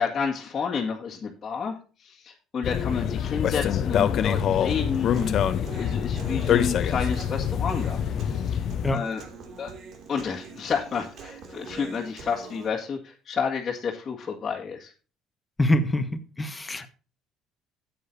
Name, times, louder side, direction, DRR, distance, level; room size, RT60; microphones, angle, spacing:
voice 1, 0.0-8.6 8.9-9.2 9.6-9.7 10.1-14.9, left 6 dB, 35° left, -4 dB, 1.8 m, -30 dB
sound 1, 2.6-8.9, left 9 dB, 50° left, 0.7 m, -25 dB
Human voice, 4.7-12.7, right 4 dB, 55° right, 2.6 m, -44 dB
voice 2, 15.6-16.9, left 1 dB, 15° left, 8 dB, 1.4 m, -25 dB
13.0 x 8.6 x 2.7 m, 0.35 s
cardioid pair, 110°, 0 cm